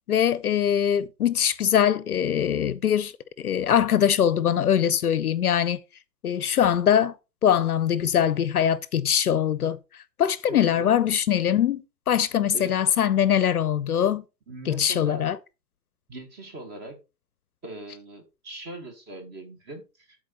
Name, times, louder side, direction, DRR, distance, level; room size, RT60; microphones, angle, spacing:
voice 1, 0.1-3.1 3.4-5.8 6.2-7.1 7.4-9.8 10.2-14.2 14.7-15.4, left 9 dB, 65° left, 0.7 m, -22 dB
voice 2, 10.5-11.0 12.5-12.8 14.5-15.3 16.1-17.0 17.6-20.2, right 2 dB, 20° right, 1.9 m, -40 dB
11.5 x 4.5 x 4.2 m
figure-of-eight pair, 125°, 50 cm